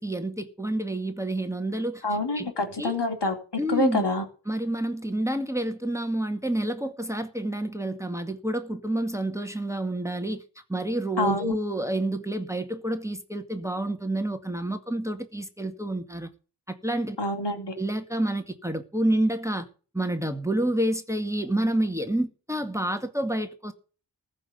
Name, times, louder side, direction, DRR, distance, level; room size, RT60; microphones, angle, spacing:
voice 1, 0.0-2.0 2.3-2.5 2.8-3.0 3.6-4.1 4.5-10.4 10.7-16.3 16.7-17.2 17.8-19.7 19.9-23.7, right 1 dB, 5° right, 2.1 m, -28 dB
voice 2, 2.0-3.4 3.7-4.2 11.2-11.5 17.2-17.7, left 2 dB, 60° left, 4.1 m, -26 dB
14.5 x 6.0 x 9.5 m
cardioid pair, 45°, 46 cm